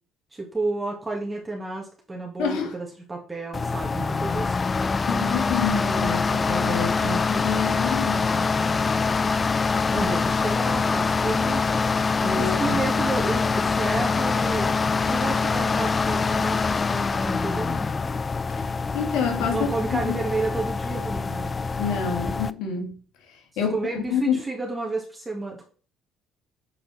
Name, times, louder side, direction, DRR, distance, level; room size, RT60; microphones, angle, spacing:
voice 1, 0.3-4.6 8.3-9.1 9.9-11.8 12.1-16.6 16.9-17.9 19.5-21.6 23.7-25.6, right 3 dB, 20° right, -1 dB, 1.9 m, -31 dB
voice 2, 2.4-2.7 5.1-8.3 10.0-10.1 12.2-12.8 18.9-20.2 21.8-23.0 23.6-24.4, left 6 dB, 75° left, 3 dB, 1.9 m, -28 dB
sound 1, 3.5-22.5, left 4 dB, 30° left, 0.3 m, -24 dB
7.3 x 4.3 x 4.2 m, 0.40 s
supercardioid pair, 70°, 0 cm